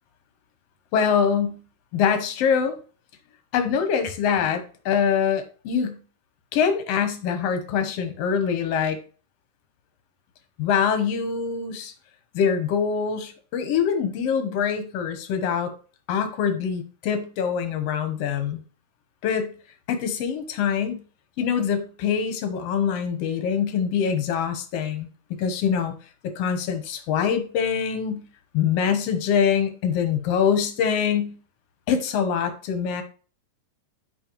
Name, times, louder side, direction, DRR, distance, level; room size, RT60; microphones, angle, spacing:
voice 1, 0.9-1.6 1.9-2.8 3.5-6.0 6.5-9.0 10.6-11.9 12.3-15.7 16.1-18.6 19.2-19.5 19.9-21.0 21.4-25.1 25.4-26.0 26.2-28.2 28.5-31.3 31.9-33.0, left 7 dB, 65° left, 8 dB, 1.6 m, -24 dB
9.9 x 5.3 x 3.0 m, 0.37 s
omnidirectional pair, 3.8 m